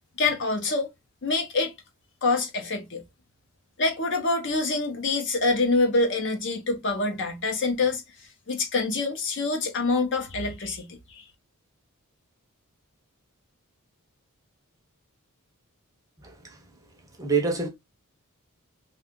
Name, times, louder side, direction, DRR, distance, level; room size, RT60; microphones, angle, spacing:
voice 1, 0.2-0.9 1.2-1.7 2.2-3.0 3.8-8.0 8.5-11.2, left 3 dB, 55° left, 0.8 m, -26 dB
voice 2, 16.2-16.7 17.1-17.7, right 4 dB, 15° right, 0.6 m, -27 dB
2.7 x 2.4 x 3.5 m
head